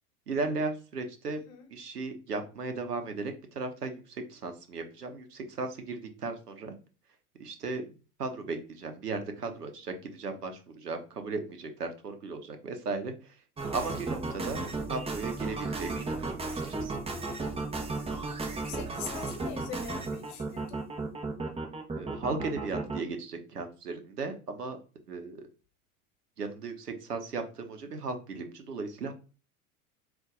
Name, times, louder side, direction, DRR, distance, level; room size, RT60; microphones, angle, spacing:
voice 1, 0.3-1.4 1.7-6.7 7.4-7.9 8.2-13.4 13.7-14.6 14.9-17.0 21.9-24.8 25.1-25.4 26.4-29.1, right 3 dB, 85° right, 6 dB, 0.7 m, -36 dB
sound 1, 13.6-23.0, right 3 dB, 15° right, 0.8 m, -34 dB
voice 2, 18.5-20.8, left 7 dB, 50° left, 6 dB, 1.0 m, -42 dB
3.9 x 2.5 x 3.7 m, 0.34 s
figure-of-eight pair, 80°, 45 cm